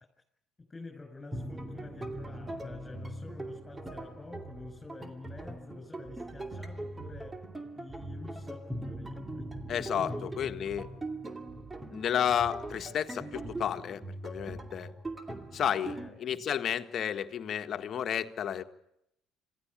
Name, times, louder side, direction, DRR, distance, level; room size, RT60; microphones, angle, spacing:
voice 1, 0.7-7.3 7.8-9.4 9.8-10.7 15.9-16.4, left 3 dB, 20° left, 2 dB, 7.0 m, -48 dB
sound 1, 1.3-16.1, right 1 dB, 20° right, 2.4 m, -41 dB
voice 2, 9.7-10.9 11.9-14.9 15.5-18.6, left 9 dB, 50° left, 8 dB, 1.6 m, -32 dB
26.5 x 16.0 x 8.8 m, 0.79 s
hypercardioid pair, 65°, 0 cm